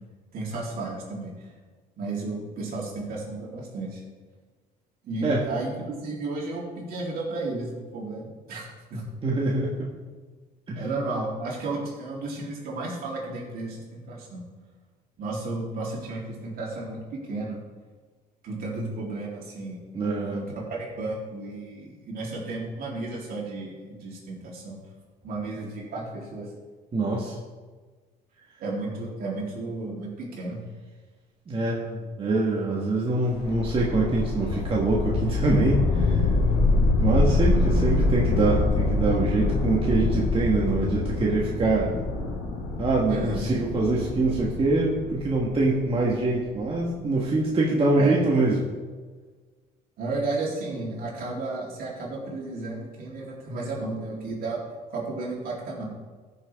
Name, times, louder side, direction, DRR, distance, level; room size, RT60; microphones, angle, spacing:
voice 1, 0.3-1.5 2.0-4.0 5.0-9.0 10.8-14.4 15.2-17.6 18.4-19.8 20.3-24.8 25.2-26.5 28.6-30.6 43.1-43.5 47.9-48.2 50.0-54.6 54.9-55.8, right 2 dB, 60° right, -4 dB, 3.6 m, -33 dB
voice 2, 9.2-9.9 10.7-10.8 19.9-20.4 26.9-27.4 31.5-36.3 37.0-41.9 42.8-48.6, right 2 dB, 30° right, -3 dB, 1.6 m, -24 dB
sound 1, 33.3-46.4, left 2 dB, 80° left, 2.0 m, -25 dB
15.0 x 6.9 x 3.6 m, 1.4 s
cardioid pair, 110°, 17 cm